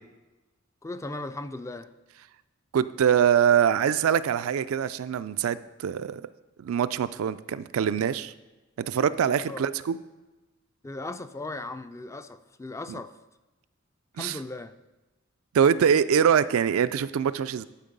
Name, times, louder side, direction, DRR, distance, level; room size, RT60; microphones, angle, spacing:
voice 1, 0.8-1.9 9.5-9.6 10.8-13.1 14.2-14.7, left 2 dB, 15° left, 11 dB, 0.3 m, -37 dB
voice 2, 2.7-6.3 6.6-8.3 8.9-10.0 14.2-14.4 15.5-17.6, right 8 dB, 75° right, 13 dB, 0.3 m, -23 dB
10.5 x 4.6 x 5.2 m, 1.1 s
head